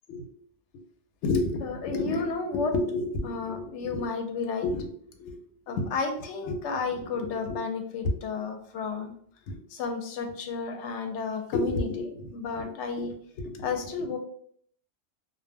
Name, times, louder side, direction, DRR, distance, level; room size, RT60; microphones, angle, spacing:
voice 1, 1.2-5.4 5.7-9.1 9.5-14.2, left 3 dB, 90° left, 5 dB, 0.9 m, -31 dB
2.1 x 2.1 x 3.4 m, 0.62 s
omnidirectional pair, 1.1 m